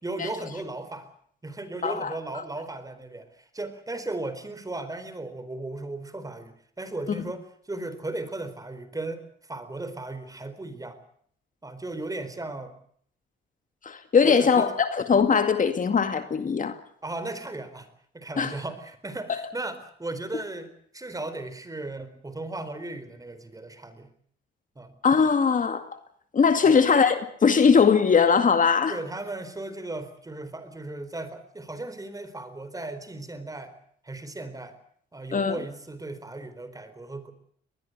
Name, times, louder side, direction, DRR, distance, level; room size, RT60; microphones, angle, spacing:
voice 1, 0.0-1.1 1.4-11.0 11.6-12.7 14.2-14.7 17.0-17.9 18.1-24.1 24.8-24.9 26.7-26.8 28.9-33.7 34.0-34.7 35.1-37.3, right 2 dB, 15° right, 4.3 m, -36 dB
voice 2, 1.8-2.1 13.8-16.8 18.4-18.5 19.3-19.4 25.0-25.9 26.3-29.0 35.3-35.6, left 6 dB, 40° left, 2.2 m, -20 dB
23.5 x 20.5 x 8.0 m
cardioid pair, 90°, 20 cm